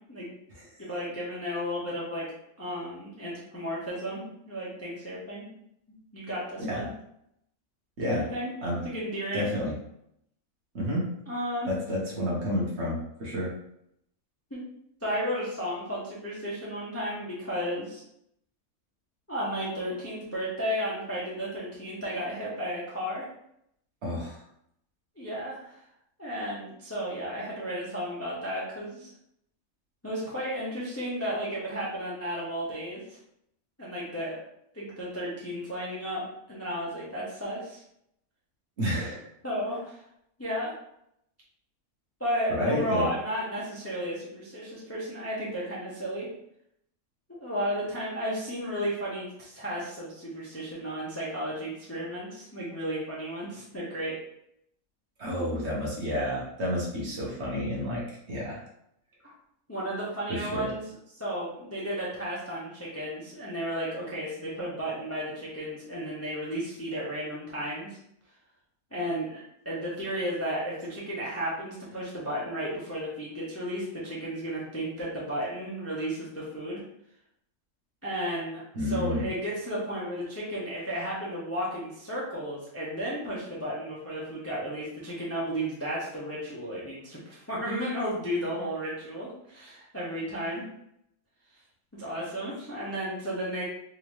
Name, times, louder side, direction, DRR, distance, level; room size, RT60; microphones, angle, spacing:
voice 1, 0.9-2.3 2.6-5.5 6.1-6.9 8.1-8.5 8.8-9.5 11.3-11.7 14.5-14.6 15.0-18.0 19.3-23.3 25.2-25.8 26.2-29.1 30.0-33.2 33.8-34.4 34.7-37.8 39.4-40.0 40.4-40.8 42.2-46.3 47.4-54.1 59.2-59.3 59.7-60.8 61.1-68.0 68.9-76.8 78.0-90.6 91.9-93.6, equal, 15° left, -6 dB, 0.6 m, -33 dB
voice 2, 9.3-9.7 10.7-11.1 11.7-13.5 24.0-24.4 38.8-39.2 42.6-43.1 55.2-58.0 58.3-58.6 60.3-60.7 78.7-79.3, left 1 dB, 50° right, -4 dB, 1.2 m, -30 dB
3.7 x 2.7 x 3.1 m, 0.75 s
omnidirectional pair, 1.6 m